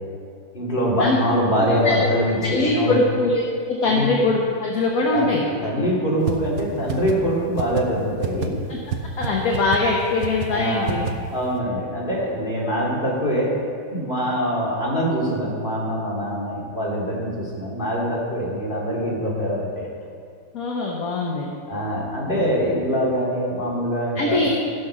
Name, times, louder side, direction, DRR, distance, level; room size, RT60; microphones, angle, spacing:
voice 1, 0.5-3.0 3.9-4.2 5.1-8.6 10.5-10.9 11.3-13.5 13.9-19.9 21.7-24.4, equal, 25° left, -6 dB, 3.3 m, -24 dB
voice 2, 2.4-5.4 8.7-8.8 9.2-11.1 20.5-21.5 22.3-22.5 24.2-24.5, left 3 dB, 50° left, -1 dB, 1.4 m, -22 dB
sound 1, 6.3-6.4 6.6-6.7 6.9-7.1 7.6-7.8 8.2-8.5 8.9-9.0 9.2-9.3 9.5-9.8 10.2-10.5 10.9-11.1, right 8 dB, 60° right, 1.1 m, -25 dB
15.5 x 6.1 x 6.1 m, 2.2 s
omnidirectional pair, 2.1 m